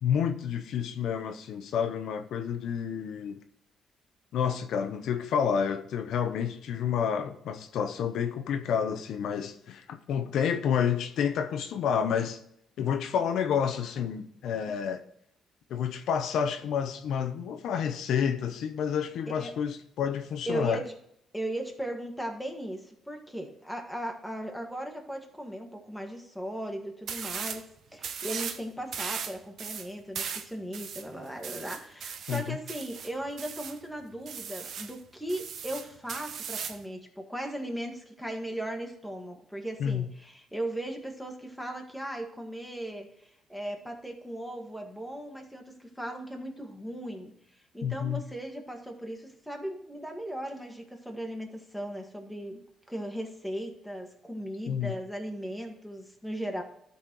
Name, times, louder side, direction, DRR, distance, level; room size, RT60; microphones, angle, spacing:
voice 1, 0.0-3.4 4.3-12.4 12.8-15.0 15.7-20.8 32.3-32.6 39.8-40.1 47.8-48.2 54.7-54.9, left 7 dB, 80° left, 0.7 m, -29 dB
voice 2, 20.5-20.9 21.3-27.6 27.9-43.1 43.5-47.3 47.7-52.6 52.9-56.6, right 1 dB, ahead, 1.8 m, -37 dB
sound 1, 27.1-27.6 28.0-28.6 28.9-33.8 34.3-34.9 35.3-36.8, right 7 dB, 65° right, 0.8 m, -37 dB
12.5 x 4.3 x 4.7 m
cardioid pair, 90°, 0 cm